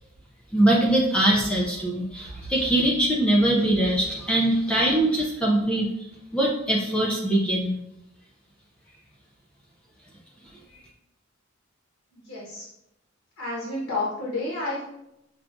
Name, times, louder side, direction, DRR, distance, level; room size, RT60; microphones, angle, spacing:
voice 1, 0.5-6.1 6.3-7.8, right 1 dB, 5° left, -4 dB, 0.4 m, -22 dB
voice 2, 12.1-12.7 13.4-14.8, left 2 dB, 70° left, -6 dB, 1.1 m, -30 dB
5.9 x 2.3 x 2.5 m, 0.85 s
head